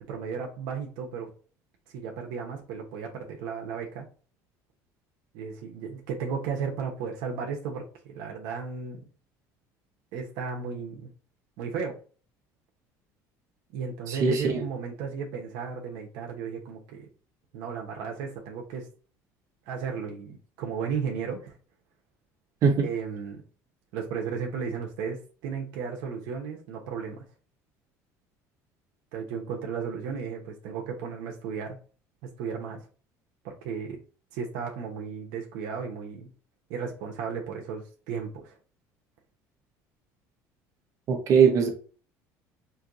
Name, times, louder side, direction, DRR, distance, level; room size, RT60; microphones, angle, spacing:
voice 1, 0.1-1.3 1.9-4.1 5.3-9.1 10.1-11.1 11.6-12.0 13.7-17.1 17.5-18.9 19.7-21.6 22.8-23.4 23.9-27.2 29.1-31.8 32.2-32.9 33.4-34.0 34.3-36.3 36.7-38.6, right 6 dB, 80° right, 1.0 m, -34 dB
voice 2, 14.1-14.6 22.6-22.9 41.1-41.7, right 6 dB, 50° right, 1.1 m, -21 dB
4.5 x 2.7 x 2.6 m
cardioid pair, 130°, 7 cm